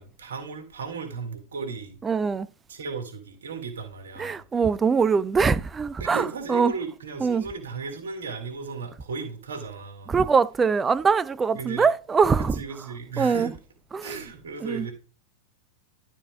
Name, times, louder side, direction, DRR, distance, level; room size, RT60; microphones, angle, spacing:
voice 1, 0.0-2.0 2.7-4.4 6.0-10.1 11.5-11.9 12.4-13.6 14.0-14.9, right 4 dB, 65° right, 1.9 m, -35 dB
voice 2, 2.0-2.5 4.2-6.7 7.2-7.4 10.1-12.5 13.2-13.5 13.9-14.2 14.6-14.9, right 5 dB, 15° right, 0.4 m, -23 dB
12.0 x 4.2 x 3.5 m
figure-of-eight pair, 90°, 0 cm